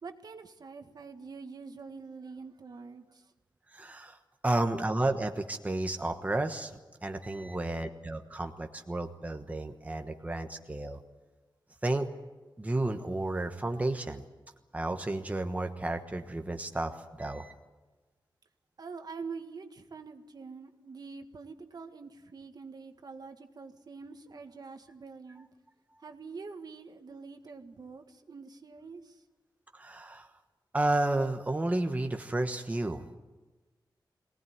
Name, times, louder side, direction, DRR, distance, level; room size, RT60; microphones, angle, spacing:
voice 1, 0.0-3.2 18.8-25.5 26.0-29.2, right 4 dB, 60° right, 6 dB, 1.8 m, -45 dB
voice 2, 3.7-4.2 4.4-6.7 7.0-11.0 11.8-12.1 12.6-14.2 14.7-17.5 29.7-30.3 30.7-33.2, right 2 dB, 20° right, 5 dB, 1.3 m, -32 dB
23.0 x 18.5 x 9.4 m, 1.2 s
wide cardioid pair, 130°, 8 cm